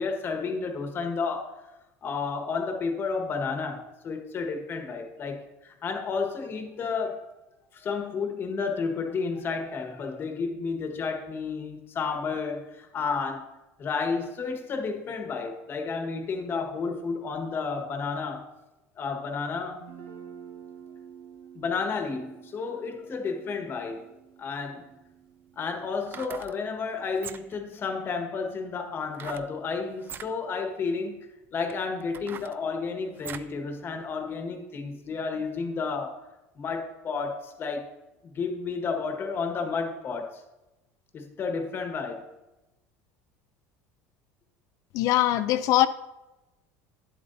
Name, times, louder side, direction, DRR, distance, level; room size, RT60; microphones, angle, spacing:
voice 1, 0.0-1.5 2.0-7.2 7.7-18.5 19.0-19.8 21.5-24.0 24.4-24.8 25.6-36.1 36.6-37.9 38.3-40.4 41.1-42.3, left 4 dB, 35° left, 4 dB, 1.4 m, -31 dB
Guitar, 19.8-27.5, right 8 dB, 80° right, 1.3 m, -50 dB
sound 1, 24.8-24.9 25.9-26.6 27.1-27.7 29.1-29.5 30.0-30.3 31.0-31.1 31.7-33.6 34.0-34.1, right 8 dB, 30° right, 0.4 m, -42 dB
voice 2, 44.9-45.9, left 14 dB, 60° left, 12 dB, 0.4 m, -22 dB
10.0 x 7.8 x 2.6 m, 1.0 s
supercardioid pair, 115°, 7 cm